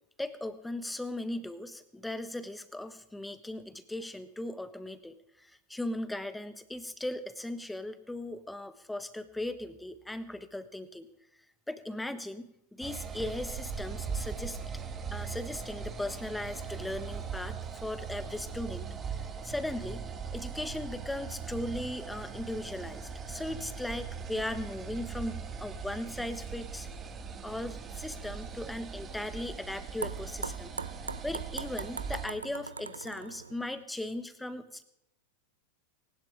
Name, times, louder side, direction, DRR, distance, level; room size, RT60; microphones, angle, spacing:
voice 1, 0.2-11.1 11.7-14.6 15.1-17.6 17.8-20.0 20.3-26.9 27.4-30.7 31.2-34.8, left 1 dB, 5° left, 12 dB, 1.3 m, -38 dB
sound 1, 12.8-32.3, right 6 dB, 20° right, 1.7 m, -40 dB
Ping Pong, 27.8-33.8, right 5 dB, 75° right, 0.6 m, -42 dB
20.0 x 19.0 x 3.6 m, 0.81 s
figure-of-eight pair, 90°, 0 cm